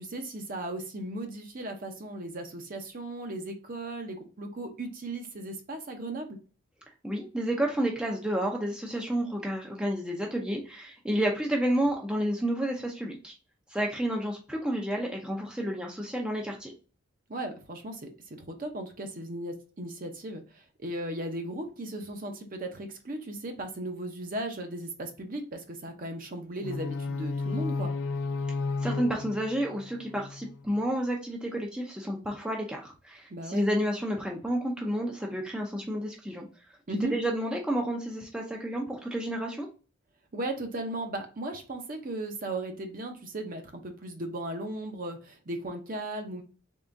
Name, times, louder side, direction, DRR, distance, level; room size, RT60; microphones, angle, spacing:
voice 1, 0.0-6.4 17.3-27.9 33.3-33.7 36.9-37.1 40.3-46.4, right 1 dB, 40° right, 4 dB, 0.7 m, -36 dB
voice 2, 7.0-13.4 13.7-16.7 28.8-36.5 37.1-39.7, right 1 dB, 5° right, 0 dB, 0.5 m, -30 dB
sound 1, 26.6-30.6, left 4 dB, 65° left, 0.4 m, -33 dB
3.7 x 3.4 x 2.6 m, 0.37 s
head